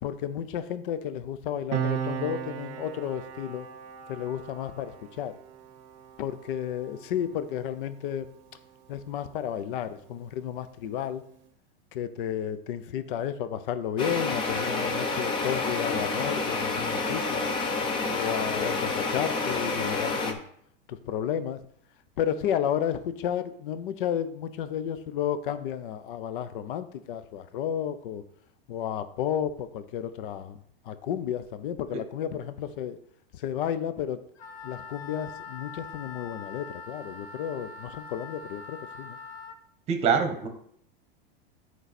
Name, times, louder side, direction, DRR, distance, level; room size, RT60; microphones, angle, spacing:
voice 1, 0.0-3.7 4.1-5.3 6.2-8.3 8.9-11.2 11.9-17.5 18.1-20.4 20.9-21.6 22.2-28.2 28.7-33.0 33.3-34.2 34.6-39.2, left 9 dB, 60° left, 12 dB, 0.8 m, -32 dB
Piano, 1.7-8.7 9.0-9.2, right 8 dB, 45° right, 0.7 m, -37 dB
sound 1, 14.0-20.3, left 3 dB, 15° left, 0.6 m, -29 dB
Wind instrument woodwind instrument, 34.4-39.6, left 4 dB, 85° left, 1.4 m, -43 dB
voice 2, 39.9-40.5, right 6 dB, 20° right, 6 dB, 1.0 m, -24 dB
10.5 x 4.8 x 4.1 m, 0.67 s
supercardioid pair, 175°, 30 cm